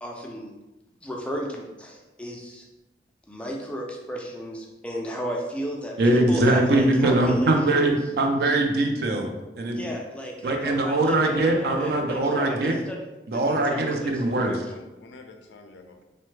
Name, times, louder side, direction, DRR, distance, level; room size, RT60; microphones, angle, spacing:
voice 1, 0.0-0.5 1.0-2.7 3.3-8.0 9.7-13.0 13.3-14.7, equal, 5° left, -1 dB, 0.3 m, -34 dB
voice 2, 6.0-9.8 10.4-12.8 13.3-14.6, right 2 dB, 60° right, 3 dB, 0.4 m, -22 dB
voice 3, 14.3-16.0, left 3 dB, 80° left, 5 dB, 0.4 m, -47 dB
3.1 x 2.1 x 3.1 m, 1.1 s
head